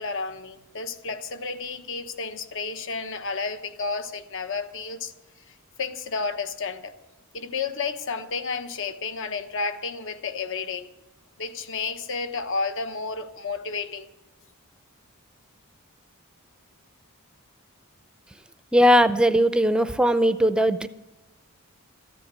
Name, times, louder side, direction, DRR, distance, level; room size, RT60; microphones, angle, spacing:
voice 1, 0.0-5.1 5.8-6.9 7.3-10.9 11.4-14.1, left 4 dB, 60° left, 1.0 m, -31 dB
voice 2, 18.7-20.9, equal, 5° right, 0.5 m, -19 dB
14.0 x 10.0 x 8.1 m
head